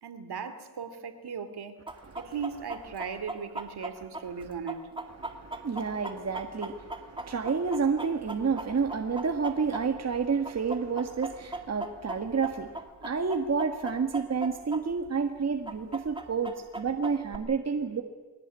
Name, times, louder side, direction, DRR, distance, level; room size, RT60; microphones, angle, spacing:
voice 1, 0.0-1.8 2.2-4.9, right 6 dB, 60° right, 9 dB, 2.7 m, -37 dB
Chicken rooster, 1.9-10.2 10.5-14.8 15.1-15.2 15.7-17.4, right 2 dB, 10° right, 2.4 m, -38 dB
voice 2, 2.0-2.4 4.4-4.5 5.2-18.0, right 5 dB, 35° right, 5 dB, 1.7 m, -30 dB
22.0 x 18.0 x 9.7 m, 1.3 s
cardioid pair, 90°, 43 cm